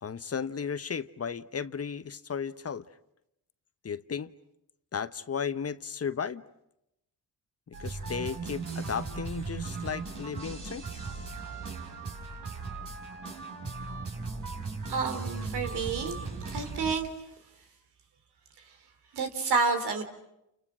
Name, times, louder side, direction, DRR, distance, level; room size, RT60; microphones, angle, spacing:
voice 1, 0.0-2.8 3.8-4.3 4.9-6.4 7.7-11.1, left 6 dB, 40° left, 13 dB, 1.1 m, -35 dB
sound 1, 7.7-17.0, right 4 dB, 55° right, 6.1 m, -37 dB
voice 2, 14.9-16.2 16.5-17.1 19.1-20.0, right 4 dB, 80° right, 7 dB, 3.6 m, -29 dB
29.5 x 29.5 x 6.3 m, 0.83 s
supercardioid pair, 65°, 39 cm